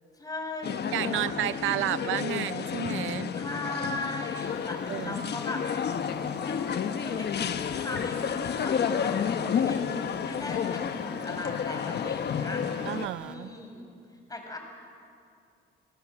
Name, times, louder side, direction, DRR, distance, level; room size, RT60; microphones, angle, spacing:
voice 1, 0.1-1.2 1.6-2.1 3.3-5.6 6.4-9.8 10.2-12.6 13.2-13.9 14.3-14.6, left 2 dB, 20° left, 3 dB, 5.7 m, -38 dB
sound 1, 0.6-13.1, left 7 dB, 55° left, 1.3 m, -31 dB
voice 2, 0.9-3.3 4.9-5.2 12.9-13.5, right 14 dB, 85° right, 15 dB, 0.6 m, -31 dB
sound 2, 4.3-13.3, equal, 5° right, 2.0 m, -50 dB
28.0 x 18.0 x 7.7 m, 2.4 s
cardioid pair, 90°, 20 cm